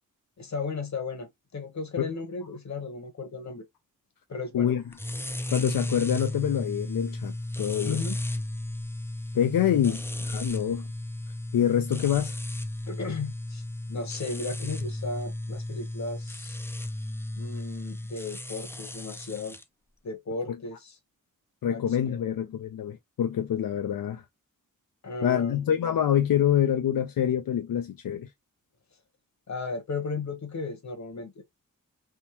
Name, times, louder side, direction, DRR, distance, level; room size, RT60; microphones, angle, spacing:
voice 1, 0.4-3.6 4.3-4.7 7.8-8.2 9.8-10.0 12.9-16.6 17.4-19.6 20.0-21.0 21.7-22.4 25.0-25.6 29.5-31.4, left 4 dB, 55° left, 1.1 m, -35 dB
sound 1, 4.9-19.6, left 1 dB, 10° left, 0.3 m, -34 dB
voice 2, 5.5-8.0 9.3-10.9 11.5-12.4 21.6-24.2 25.2-28.3, left 9 dB, 85° left, 0.5 m, -26 dB
3.6 x 2.7 x 2.9 m
wide cardioid pair, 135°, 33 cm